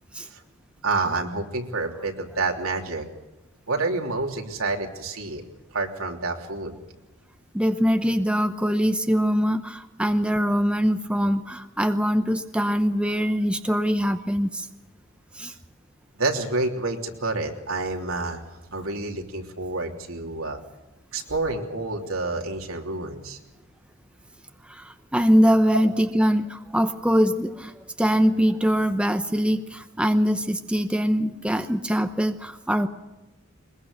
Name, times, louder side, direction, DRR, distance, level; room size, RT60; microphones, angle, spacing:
voice 1, 0.8-3.1 3.7-5.4 5.7-6.8 16.2-18.4 18.7-20.6 21.1-23.4, right 3 dB, 80° right, 2 dB, 3.2 m, -28 dB
voice 2, 7.5-14.7 15.3-15.5 24.7-32.9, equal, 5° right, 8 dB, 0.8 m, -23 dB
22.5 x 21.5 x 6.7 m, 1.0 s
head